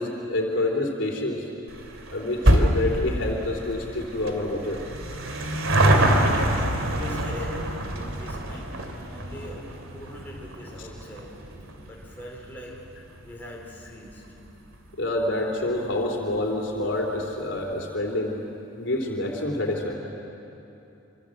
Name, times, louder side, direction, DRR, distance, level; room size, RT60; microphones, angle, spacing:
voice 1, 0.0-1.5 2.1-4.8 10.8-10.9 15.0-18.4 18.8-19.9, left 2 dB, 65° left, 1 dB, 3.3 m, -27 dB
sound 1, 1.7-14.4 14.7-14.8 15.7-15.8 16.0-16.1 16.4-16.5, right 1 dB, 90° right, 2.7 m, -26 dB
voice 2, 6.9-7.7 8.0-11.3 11.9-12.8 13.2-14.2, left 1 dB, 10° left, -3 dB, 4.5 m, -42 dB
26.5 x 25.5 x 7.8 m, 2.9 s
head